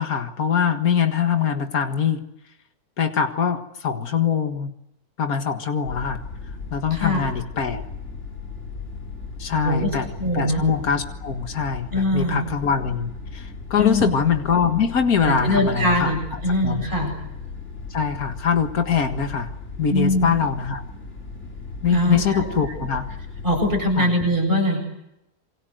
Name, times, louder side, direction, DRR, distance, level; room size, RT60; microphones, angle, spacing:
voice 1, 0.0-2.2 3.0-4.7 5.2-6.2 6.7-7.8 9.4-10.1 10.3-16.1 16.6-16.9 17.9-19.5 19.8-20.8 21.8-23.1 24.0-24.1, left 7 dB, 75° left, 6 dB, 2.2 m, -23 dB
sound 1, 5.8-23.9, left 4 dB, 50° left, 4.5 m, -36 dB
voice 2, 6.9-7.2 9.6-9.9 10.2-10.6 11.9-12.4 13.7-14.1 15.2-17.1 19.9-20.3 21.9-22.5 23.4-24.8, left 1 dB, 35° right, 1 dB, 8.1 m, -22 dB
28.0 x 23.5 x 7.9 m, 0.84 s
omnidirectional pair, 1.6 m